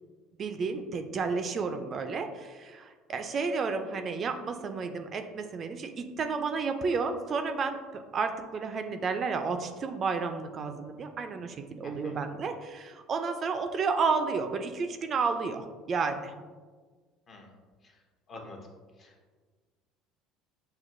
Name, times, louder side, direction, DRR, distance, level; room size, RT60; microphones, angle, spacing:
voice 1, 0.4-16.3, right 4 dB, 40° right, 7 dB, 0.3 m, -31 dB
voice 2, 11.8-12.2 17.3-17.5 17.8-18.0 18.3-18.6 19.0-19.2, left 3 dB, 45° left, 2 dB, 0.8 m, -48 dB
5.9 x 2.2 x 2.5 m, 1.5 s
supercardioid pair, 95°, 0 cm